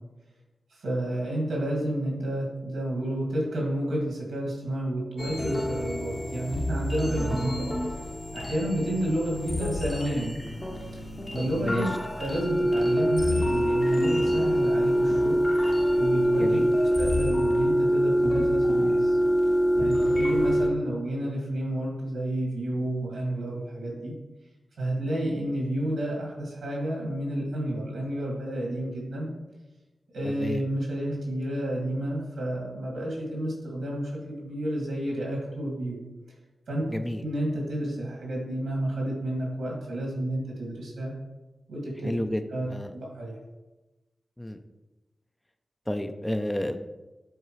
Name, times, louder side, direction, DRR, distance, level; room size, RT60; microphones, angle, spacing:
voice 1, 0.7-8.0 8.3-10.3 11.3-11.9 12.2-15.4 16.0-16.6 17.0-19.2 19.8-24.1 24.8-29.3 30.1-36.0 36.7-36.8 37.2-41.1 41.7-42.1 42.5-43.3, right 1 dB, 90° right, -2 dB, 2.1 m, -30 dB
sound 1, 5.2-20.7, equal, 30° left, 1.0 m, -25 dB
voice 2, 16.4-16.7 19.7-20.2 30.2-30.6 36.9-37.2 42.0-42.4 42.7-42.9 44.4-44.6 45.9-46.9, left 1 dB, 15° left, 7 dB, 0.5 m, -31 dB
8.3 x 3.9 x 3.1 m, 1.1 s
cardioid pair, 40°, 0 cm